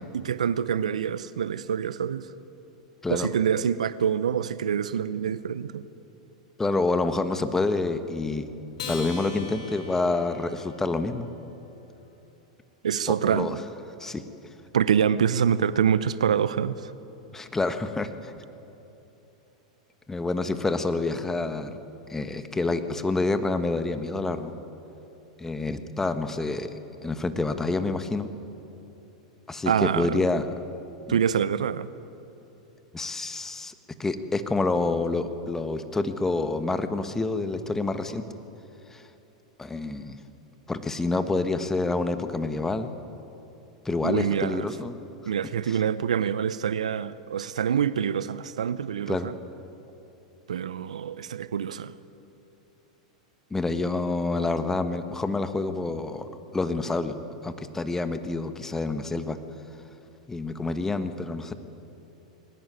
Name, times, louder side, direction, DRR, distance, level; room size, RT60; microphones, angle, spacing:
voice 1, 0.1-2.3 3.1-5.8 12.8-13.6 14.7-16.9 29.7-30.2 31.1-31.9 44.0-44.7 45.3-49.3 50.5-52.0, right 8 dB, 80° right, 16 dB, 0.7 m, -26 dB
voice 2, 6.6-8.4 8.9-11.3 13.1-13.6 14.0-14.2 17.3-18.3 20.1-21.8 22.1-24.5 25.4-28.3 29.5-30.5 31.1-31.2 32.9-33.7 34.0-38.2 38.9-39.0 39.6-40.2 40.7-42.9 43.8-45.0 45.7-45.8 49.1-49.3 53.5-57.1 57.4-59.4 60.3-61.5, left 3 dB, 10° left, 9 dB, 1.4 m, -28 dB
Acoustic guitar, 8.7-11.4, left 4 dB, 65° left, 3.8 m, -40 dB
21.0 x 18.5 x 9.4 m, 2.9 s
hypercardioid pair, 100°, 4 cm